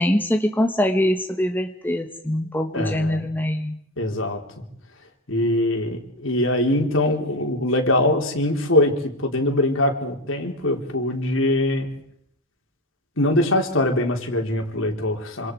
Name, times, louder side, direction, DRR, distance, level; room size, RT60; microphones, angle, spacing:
voice 1, 0.0-3.8, left 1 dB, 10° left, 5 dB, 1.4 m, -23 dB
voice 2, 2.7-3.3 4.0-4.7 5.3-11.9 13.2-15.5, left 1 dB, 75° left, 3 dB, 3.8 m, -22 dB
27.0 x 26.5 x 4.8 m, 0.70 s
head